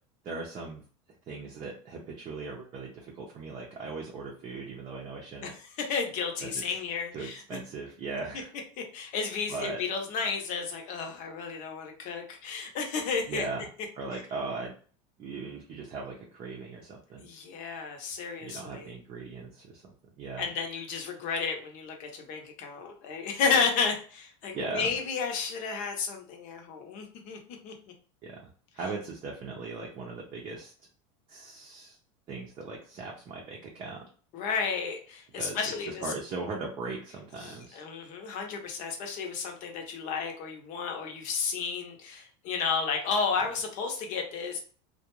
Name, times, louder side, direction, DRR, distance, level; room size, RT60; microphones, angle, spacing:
voice 1, 0.2-0.8 1.3-5.5 6.4-6.6 7.1-8.5 9.5-9.8 13.3-13.7 14.0-14.7 15.2-17.3 18.4-19.8 20.2-20.5 24.5-24.9 28.2-28.4 28.7-30.7 31.3-32.0 32.3-34.1 35.3-35.6 35.9-37.8, right 3 dB, 35° right, -2 dB, 0.6 m, -38 dB
voice 2, 5.4-7.6 8.9-13.5 17.2-18.9 20.4-27.4 27.6-27.7 34.3-36.0 37.4-44.6, left 5 dB, 50° left, 3 dB, 0.8 m, -32 dB
2.4 x 2.2 x 3.0 m, 0.41 s
supercardioid pair, 125°, 17 cm